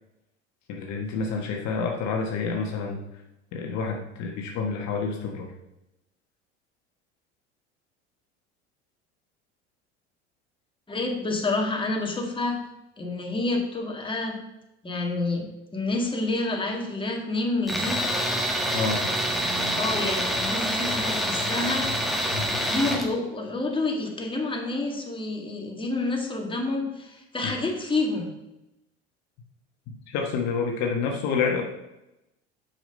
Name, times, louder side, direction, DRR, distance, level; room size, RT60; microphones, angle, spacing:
voice 1, 0.7-3.0 3.5-5.5 18.7-19.0 22.3-22.5 27.4-27.5 30.1-31.6, left 5 dB, 55° left, 2 dB, 1.3 m, -28 dB
voice 2, 10.9-12.6 13.0-14.4 14.8-18.0 19.8-21.9 22.7-28.3, left 2 dB, 15° left, 1 dB, 1.8 m, -28 dB
Tools, 17.7-23.1, equal, ahead, 1.6 m, -26 dB
6.1 x 5.8 x 5.3 m, 0.91 s
hypercardioid pair, 75°, 33 cm